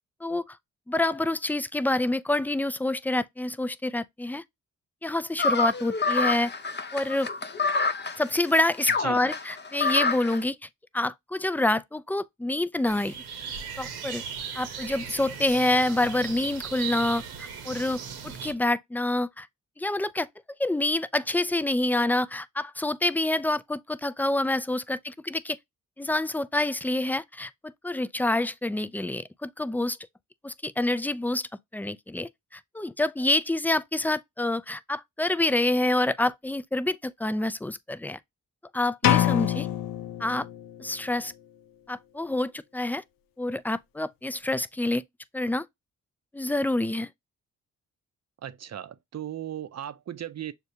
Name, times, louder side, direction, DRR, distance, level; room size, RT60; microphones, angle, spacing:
voice 1, 0.2-0.6 0.9-4.4 5.0-6.5 6.9-7.3 8.2-10.6 10.9-13.2 13.8-14.2 14.5-19.5 19.8-20.3 20.6-25.6 26.0-27.5 27.8-30.0 30.4-38.2 38.7-39.7 40.2-40.5 40.8-41.3 41.9-43.0 43.4-45.0 45.3-45.7 46.3-47.1, left 2 dB, 5° left, 0.3 m, -27 dB
sound 1, 5.4-10.4, left 3 dB, 30° left, 0.7 m, -27 dB
voice 2, 9.0-9.3 48.4-50.5, right 10 dB, 45° right, 0.6 m, -37 dB
sound 2, 12.8-18.5, right 7 dB, 85° right, 1.0 m, -37 dB
sound 3, 39.0-40.9, left 11 dB, 65° left, 0.5 m, -25 dB
6.5 x 2.4 x 2.7 m
supercardioid pair, 45°, 36 cm